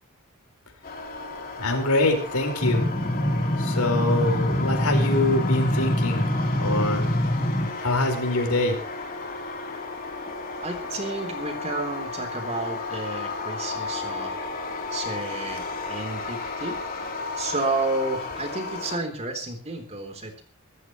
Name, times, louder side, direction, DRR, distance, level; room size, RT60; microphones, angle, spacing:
sound 1, 0.8-19.0, left 3 dB, 40° left, 3.5 m, -34 dB
voice 1, 1.6-2.8 3.6-6.3 6.6-7.1 7.8-8.7, left 2 dB, 90° left, 3 dB, 4.9 m, -24 dB
sound 2, 2.6-7.7, equal, 20° left, 2.1 m, -25 dB
voice 2, 10.6-14.3 14.9-16.8 17.4-20.4, right 2 dB, 30° right, 5 dB, 3.6 m, -31 dB
24.5 x 14.5 x 3.2 m, 0.34 s
head